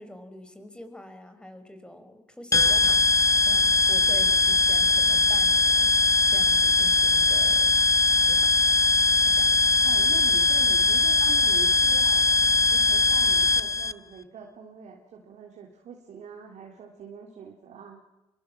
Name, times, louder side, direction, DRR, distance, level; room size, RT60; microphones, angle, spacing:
voice 1, 0.0-3.0 3.4-5.9 6.3-7.7 8.2-8.5 9.2-9.5, left 1 dB, 5° left, 8 dB, 5.1 m, -45 dB
sound 1, 2.5-13.9, left 4 dB, 25° left, 0.9 m, -21 dB
voice 2, 9.8-18.0, right 6 dB, 70° right, 0 dB, 3.7 m, -44 dB
26.0 x 23.0 x 7.6 m, 0.99 s
supercardioid pair, 60°, 13 cm